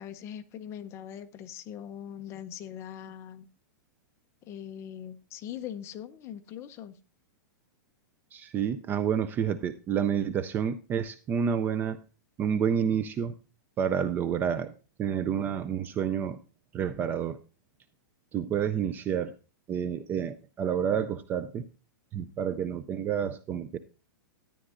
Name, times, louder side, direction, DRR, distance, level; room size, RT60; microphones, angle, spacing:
voice 1, 0.0-3.5 4.4-7.0, left 10 dB, 25° left, 9 dB, 0.7 m, -41 dB
voice 2, 8.3-12.0 12.4-13.3 13.8-14.7 15.0-16.4 16.7-17.4 18.3-19.4 19.7-21.6 22.1-23.8, right 8 dB, 15° right, 13 dB, 0.4 m, -29 dB
13.0 x 10.0 x 2.5 m, 0.32 s
supercardioid pair, 160°, 11 cm